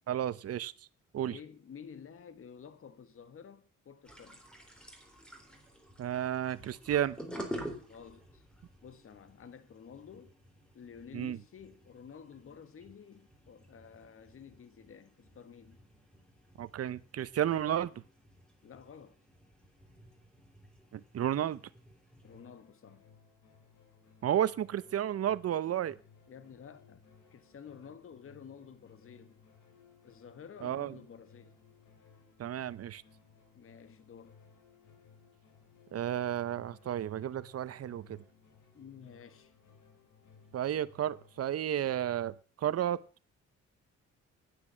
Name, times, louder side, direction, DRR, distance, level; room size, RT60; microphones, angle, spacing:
voice 1, 0.1-0.7 1.1-1.4 6.0-7.2 11.1-11.4 16.6-17.9 20.9-21.6 24.2-26.0 30.6-30.9 32.4-33.0 35.9-38.2 40.5-43.0, right 10 dB, 55° right, 0.8 m, -32 dB
voice 2, 1.3-4.4 7.9-8.4 8.8-10.4 10.7-15.8 18.6-19.2 22.2-23.1 26.3-27.0 27.3-29.4 30.0-31.5 33.5-34.4 38.7-39.5, left 7 dB, 45° left, 1.4 m, -51 dB
sound 1, 4.0-22.4, equal, 5° left, 3.7 m, -50 dB
sound 2, 22.2-41.4, left 5 dB, 70° left, 3.7 m, -61 dB
9.9 x 9.7 x 7.2 m
cardioid pair, 90°, 30 cm